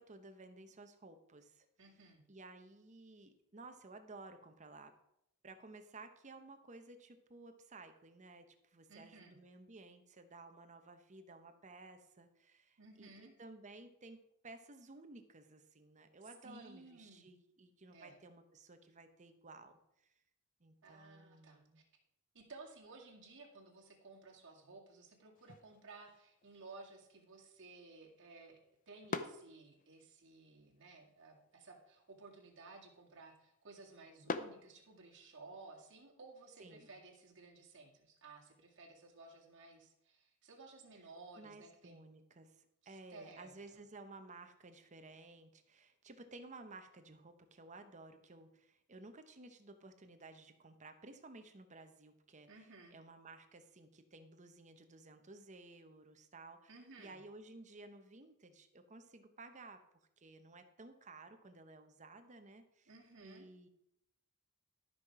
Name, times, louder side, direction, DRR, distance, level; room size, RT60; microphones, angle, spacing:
voice 1, 0.0-1.7 2.3-4.9 5.4-20.1 20.6-21.8 36.6-36.9 41.3-59.8 60.2-62.9 63.2-63.7, right 2 dB, 35° right, 8 dB, 0.9 m, -55 dB
voice 2, 1.8-2.2 8.9-9.4 12.8-13.3 16.2-17.3 17.9-18.2 20.8-21.6 22.3-28.6 28.9-42.0 42.8-43.8 52.5-53.0 56.7-57.2 62.9-63.5, right 3 dB, 55° right, -1 dB, 2.2 m, -56 dB
sound 1, 25.3-35.4, left 4 dB, 40° left, 0.6 m, -49 dB
13.0 x 5.8 x 4.8 m, 0.79 s
head